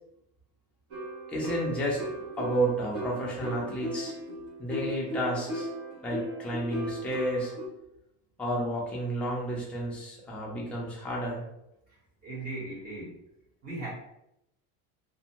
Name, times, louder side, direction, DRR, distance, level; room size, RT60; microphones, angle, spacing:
sound 1, 0.9-7.7, right 1 dB, 60° right, 1.0 m, -37 dB
voice 1, 1.3-2.0 2.4-4.1 4.6-5.7 6.0-7.5 8.4-11.4, right 1 dB, 5° left, -4 dB, 0.3 m, -31 dB
voice 2, 12.2-13.2 13.6-13.9, right 2 dB, 25° right, -7 dB, 1.1 m, -37 dB
2.5 x 2.1 x 2.8 m, 0.82 s
cardioid pair, 170°, 36 cm